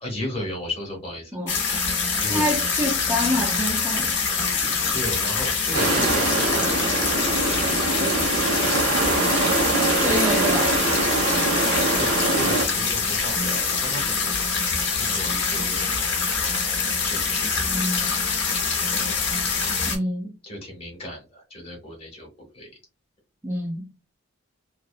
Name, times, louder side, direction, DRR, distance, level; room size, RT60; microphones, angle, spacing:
voice 1, 0.0-1.3 2.1-2.5 4.9-6.8 7.3-9.1 11.8-14.4 14.9-16.1 17.0-17.8 18.1-18.9 20.4-22.7, left 1 dB, 25° left, 1.2 m, -35 dB
sound 1, 1.5-20.0, left 5 dB, 55° left, 0.8 m, -25 dB
voice 2, 2.3-4.1 10.0-10.7 17.7-18.1 19.9-20.3 23.4-23.9, equal, 10° right, 0.3 m, -26 dB
sound 2, 5.7-12.7, right 3 dB, 70° right, 0.7 m, -23 dB
2.8 x 2.2 x 2.2 m
head